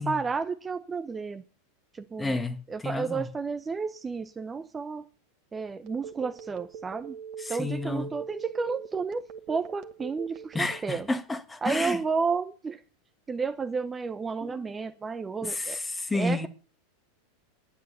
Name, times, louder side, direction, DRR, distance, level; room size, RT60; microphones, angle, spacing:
voice 1, 0.0-1.4 1.9-2.4 2.7-5.0 5.5-7.1 7.5-11.1 11.6-12.8 13.3-15.8 16.1-16.5, right 5 dB, 20° right, 0.9 m, -31 dB
voice 2, 2.2-3.3 7.4-8.1 10.5-12.0 14.4-14.6 15.4-16.5, left 2 dB, 10° left, 1.6 m, -31 dB
Telephone, 5.9-11.1, right 7 dB, 50° right, 2.0 m, -41 dB
10.5 x 9.5 x 8.1 m
hypercardioid pair, 115°, 0 cm